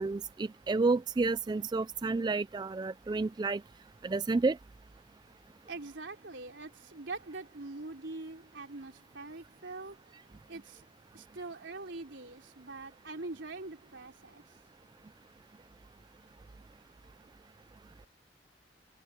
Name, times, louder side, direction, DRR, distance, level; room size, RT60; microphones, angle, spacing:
voice 1, 0.0-3.6 4.0-4.6, right 3 dB, 25° right, 0.3 m, -30 dB
voice 2, 5.7-10.0 10.5-10.8 11.1-14.6, right 3 dB, 80° right, 3.4 m, -43 dB
head